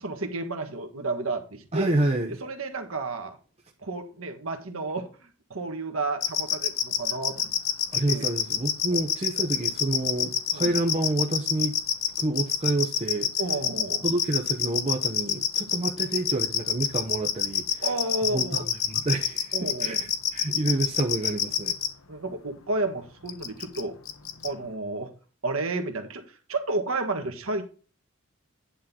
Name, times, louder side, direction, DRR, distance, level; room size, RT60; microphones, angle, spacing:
voice 1, 0.0-2.0 2.4-3.4 3.8-7.5 8.1-8.2 8.9-9.0 10.5-10.7 13.4-14.1 17.8-18.6 19.5-20.0 22.1-24.0 24.4-25.1 25.4-26.2 26.5-27.6, right 2 dB, 65° right, 1.5 m, -31 dB
voice 2, 1.7-2.4 7.9-11.8 12.2-13.3 14.0-17.9 18.3-21.8, right 2 dB, 30° right, 0.8 m, -28 dB
sound 1, 6.2-21.9 23.3-23.8 24.1-24.5, left 9 dB, 65° left, 1.1 m, -26 dB
10.0 x 3.8 x 5.7 m
head